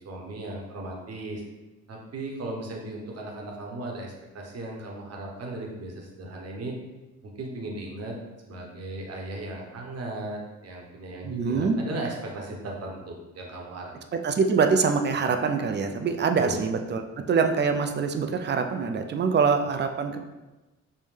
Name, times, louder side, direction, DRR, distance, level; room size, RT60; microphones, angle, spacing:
voice 1, 0.0-1.4 1.9-6.8 7.2-8.2 8.4-13.9 16.4-16.6, right 2 dB, 55° right, 0 dB, 1.0 m, -36 dB
voice 2, 11.2-11.8 14.2-20.2, right 5 dB, 35° right, 6 dB, 0.4 m, -24 dB
5.4 x 2.1 x 3.2 m, 1.1 s
cardioid pair, 90°, 30 cm